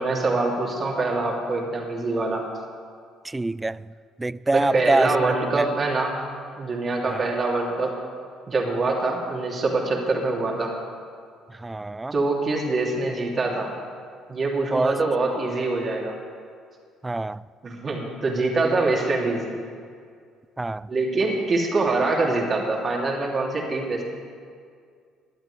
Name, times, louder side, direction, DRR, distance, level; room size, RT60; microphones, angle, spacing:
voice 1, 0.0-2.4 4.5-6.2 6.6-8.0 8.5-10.7 12.1-13.7 14.3-16.2 17.6-19.6 20.9-24.0, right 3 dB, 40° right, 2.9 m, -24 dB
voice 2, 3.2-3.9 4.2-5.6 7.1-7.3 11.5-12.1 14.7-15.0 17.0-17.4 20.6-20.9, right 2 dB, 15° right, 0.3 m, -25 dB
19.5 x 12.0 x 3.4 m
figure-of-eight pair, 50°, 0 cm